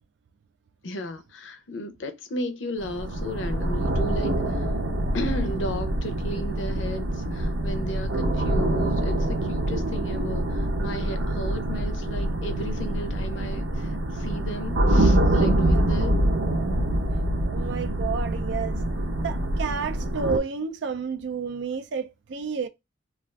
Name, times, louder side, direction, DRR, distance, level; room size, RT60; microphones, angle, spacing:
voice 1, 0.8-4.7 5.1-16.1, equal, 70° left, 0.6 m, -34 dB
sound 1, 2.8-20.4, right 1 dB, 85° right, 0.7 m, -25 dB
voice 2, 17.4-18.8 19.2-22.7, right 5 dB, 60° right, 0.4 m, -31 dB
2.4 x 2.4 x 3.1 m
head